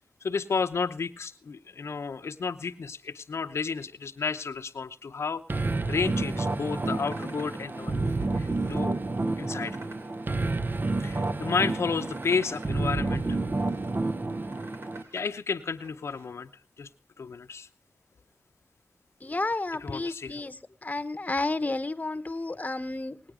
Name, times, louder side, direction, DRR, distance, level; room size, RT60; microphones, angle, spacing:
voice 1, 0.2-9.0 9.4-9.8 11.0-13.4 15.1-16.5 16.8-16.9 17.2-17.7 19.8-20.5, left 5 dB, 90° left, 7 dB, 0.7 m, -32 dB
sound 1, 5.5-15.0, right 2 dB, 45° right, 0.7 m, -30 dB
sound 2, 7.0-7.6 8.0-8.8 9.3-10.1 10.5-11.3 11.8-13.9 14.3-15.3 15.6-16.3, right 2 dB, 90° right, 2.9 m, -50 dB
voice 2, 19.2-23.2, left 2 dB, 35° left, 11 dB, 0.9 m, -31 dB
19.0 x 8.9 x 4.9 m, 0.35 s
cardioid pair, 50°, 4 cm